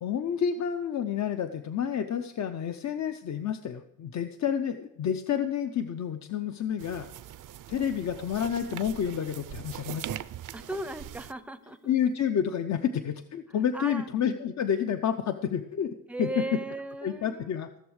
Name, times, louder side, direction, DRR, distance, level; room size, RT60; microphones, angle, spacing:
voice 1, 0.0-7.1 7.7-10.2 11.9-15.9 16.2-16.4 17.0-17.8, left 8 dB, 60° left, 9 dB, 0.6 m, -29 dB
sound 1, 6.8-11.3, right 12 dB, 70° right, 0.6 m, -41 dB
voice 2, 10.5-11.9 13.7-14.1 16.1-17.5, right 1 dB, 5° right, 12 dB, 0.5 m, -36 dB
15.5 x 7.0 x 6.4 m, 0.90 s
wide cardioid pair, 160°, 32 cm